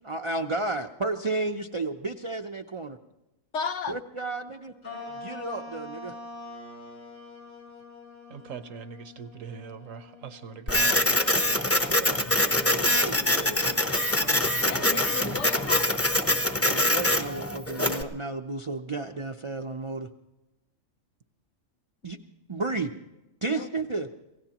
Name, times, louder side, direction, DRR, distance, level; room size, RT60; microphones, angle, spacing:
voice 1, 0.0-3.0 3.9-4.7 5.1-6.2 11.4-13.8 16.6-20.1 22.0-22.2 22.5-22.9 23.4-24.1, right 3 dB, 40° right, 4 dB, 0.4 m, -33 dB
voice 2, 3.5-4.0 14.7-15.9 23.5-23.7, left 5 dB, 60° left, 9 dB, 1.0 m, -33 dB
sound 1, 4.8-11.5, left 3 dB, 85° left, 6.8 m, -44 dB
voice 3, 8.3-11.2 14.7-14.9, right 7 dB, 70° right, 11 dB, 1.3 m, -41 dB
Printer, 10.7-18.0, left 1 dB, 15° left, 0.7 m, -24 dB
27.5 x 16.5 x 3.0 m, 0.99 s
omnidirectional pair, 1.4 m